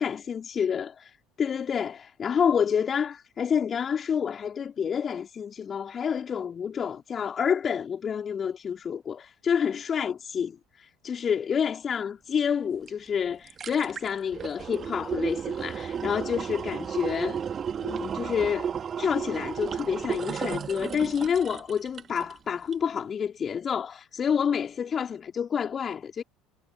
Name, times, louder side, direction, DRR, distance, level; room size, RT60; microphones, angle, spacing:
voice 1, 0.0-17.4 17.8-26.2, left 7 dB, 35° left, 3.6 m, -28 dB
sound 1, 12.9-13.0 13.3-22.4 22.7-22.8, right 7 dB, 35° right, 1.6 m, -33 dB
figure-of-eight pair, 65°, 0 cm